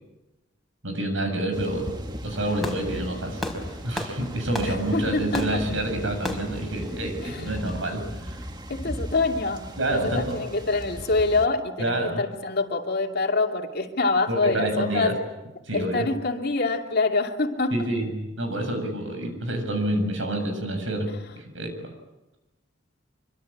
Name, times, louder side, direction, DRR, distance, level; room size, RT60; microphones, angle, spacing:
voice 1, 0.8-1.9 2.2-3.4 3.8-8.4 9.8-10.4 11.8-12.2 14.3-15.1 15.6-16.1 17.7-21.9, right 1 dB, 70° right, 6 dB, 7.2 m, -28 dB
sound 1, 1.5-11.5, equal, 20° right, 1.6 m, -37 dB
Fireworks, 2.3-7.9, equal, ahead, 4.3 m, -36 dB
voice 2, 4.6-5.6 7.2-7.5 8.7-15.1 15.7-17.8, left 3 dB, 50° left, 3 dB, 2.7 m, -26 dB
25.5 x 25.0 x 8.7 m, 1.0 s
head